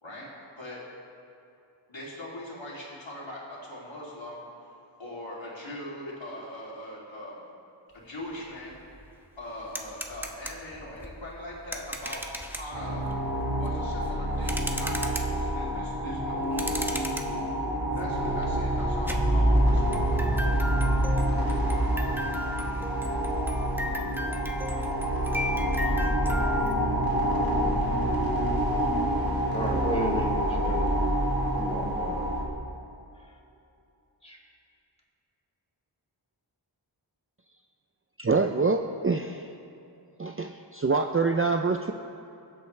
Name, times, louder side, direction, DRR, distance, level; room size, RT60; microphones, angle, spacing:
voice 1, 1.9-4.7 5.0-7.4 7.9-13.1 13.6-17.0 17.9-19.9, left 1 dB, 75° left, -6 dB, 3.1 m, -41 dB
sound 1, 8.3-8.4 8.7-26.7, equal, 5° right, 1.0 m, -38 dB
sound 2, 12.7-32.5, right 1 dB, 50° right, 2.3 m, -27 dB
sound 3, 16.0-21.2 22.1-22.3 23.5-23.6 24.3-24.4 25.1-25.5 25.8-29.1, left 1 dB, 45° left, 1.6 m, -39 dB
voice 2, 29.5-30.8 31.5-32.2 34.2-34.4, equal, 15° left, -3 dB, 2.4 m, -33 dB
voice 3, 38.2-39.5 40.2-41.9, right 4 dB, 30° right, 5 dB, 0.5 m, -26 dB
23.0 x 8.2 x 3.3 m, 2.7 s
wide cardioid pair, 55°, 46 cm